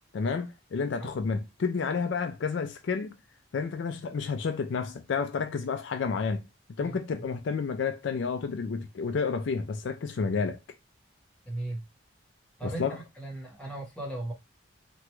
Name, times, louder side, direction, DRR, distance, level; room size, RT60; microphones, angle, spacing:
voice 1, 0.1-3.1 3.5-6.4 6.8-10.6 12.6-13.0, left 5 dB, 60° left, 0.4 m, -30 dB
voice 2, 11.4-11.8 12.6-14.3, right 2 dB, 5° left, 0.9 m, -37 dB
2.9 x 2.3 x 3.0 m
head